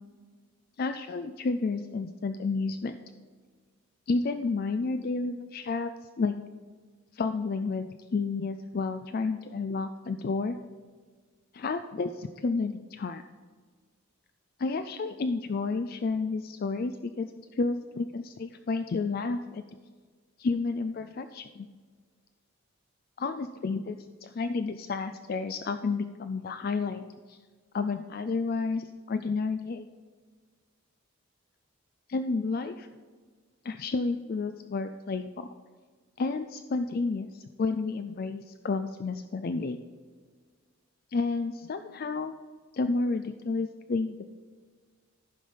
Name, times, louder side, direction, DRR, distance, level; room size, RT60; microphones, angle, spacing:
voice 1, 0.8-3.0 4.1-5.9 6.2-6.3 7.1-10.6 11.5-13.2 14.6-19.6 20.4-21.7 23.2-27.0 27.3-27.4 27.7-29.9 32.1-32.9 33.6-35.5 36.2-39.8 41.1-42.3 42.7-44.2, left 4 dB, 45° left, 9 dB, 0.4 m, -31 dB
14.0 x 5.5 x 5.1 m, 1.5 s
head